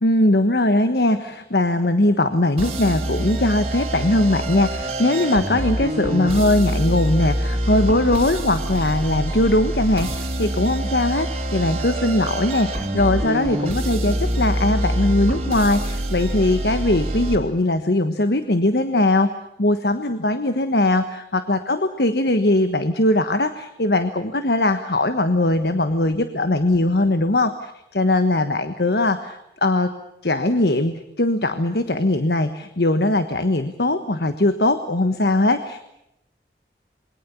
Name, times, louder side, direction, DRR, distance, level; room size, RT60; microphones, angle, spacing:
voice 1, 0.0-19.3 19.6-29.9 30.2-35.8, left 1 dB, 70° left, 9 dB, 1.3 m, -20 dB
sound 1, 2.6-17.4, right 1 dB, 35° right, 3.5 m, -25 dB
27.5 x 22.0 x 7.1 m, 0.81 s
head